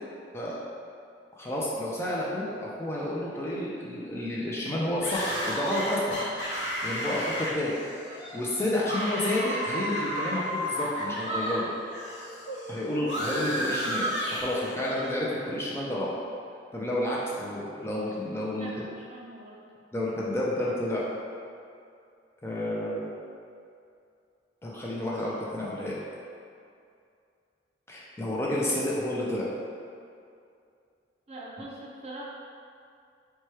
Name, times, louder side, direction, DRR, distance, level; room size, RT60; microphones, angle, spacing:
voice 1, 1.4-6.2 6.8-7.7 8.1-11.7 12.7-16.1 16.7-18.7 19.9-21.0 22.4-23.1 24.6-26.0 27.9-29.5, left 1 dB, 15° left, -6 dB, 0.4 m, -30 dB
sound 1, 5.0-11.6 11.9-15.1, equal, 75° left, 0.8 m, -32 dB
voice 2, 18.5-19.6 31.3-32.2, right 2 dB, 35° right, -4 dB, 0.6 m, -43 dB
4.2 x 2.2 x 3.1 m, 2.4 s
head